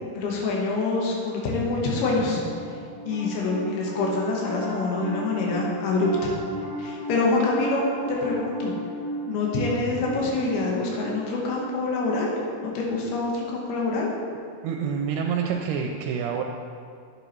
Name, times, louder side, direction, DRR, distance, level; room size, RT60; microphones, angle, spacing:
voice 1, 0.1-2.4 3.1-6.3 6.8-8.7 9.3-12.3 12.6-14.1, left 3 dB, 85° left, -2 dB, 3.1 m, -26 dB
Piano, 2.3-13.8, right 1 dB, 50° right, 2.3 m, -36 dB
voice 2, 14.6-16.4, right 7 dB, 90° right, 1 dB, 2.6 m, -27 dB
9.1 x 7.9 x 3.1 m, 2.3 s
omnidirectional pair, 4.5 m